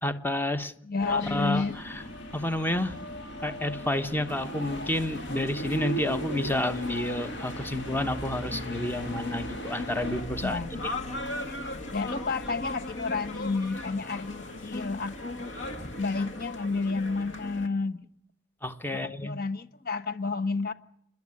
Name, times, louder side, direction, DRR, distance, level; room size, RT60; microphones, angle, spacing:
voice 1, 0.0-0.7 1.1-2.0 2.3-3.0 3.4-10.9 15.6-15.9 18.6-19.3, left 1 dB, 10° left, 1.1 m, -30 dB
voice 2, 0.8-1.7 10.4-10.7 11.9-15.5 16.0-18.1 18.9-20.7, left 4 dB, 55° left, 1.2 m, -30 dB
sound 1, 1.0-10.2, right 1 dB, 70° left, 3.9 m, -38 dB
sound 2, 4.3-17.7, left 1 dB, 90° left, 2.0 m, -38 dB
sound 3, 10.0-16.5, left 2 dB, 40° left, 2.2 m, -46 dB
28.5 x 10.5 x 9.7 m
head